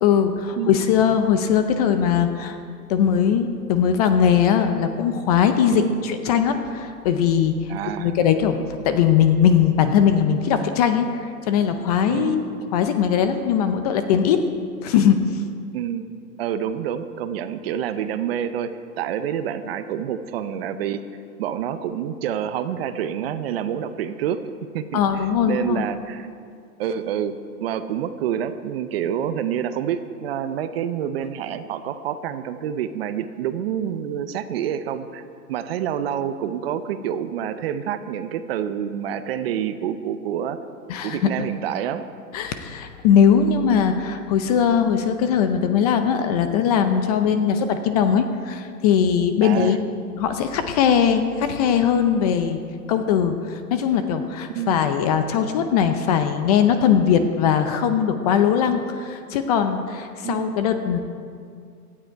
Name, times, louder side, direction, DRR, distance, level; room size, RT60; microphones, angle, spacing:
voice 1, 0.0-2.6 2.9-7.6 8.0-8.6 8.8-14.4 14.8-15.2 24.9-25.9 40.9-41.3 42.3-49.8 50.1-52.6 52.9-61.0, left 8 dB, 25° left, 8 dB, 0.6 m, -20 dB
voice 2, 7.7-8.2 12.1-12.4 15.7-16.1 16.4-21.0 21.4-24.4 24.7-26.3 26.8-35.2 35.5-40.6 41.0-42.0 47.3-47.6 49.4-49.8 54.5-54.8 60.2-60.6, right 9 dB, 40° right, 11 dB, 0.7 m, -27 dB
17.0 x 12.0 x 4.6 m, 2.3 s
hypercardioid pair, 145°, 46 cm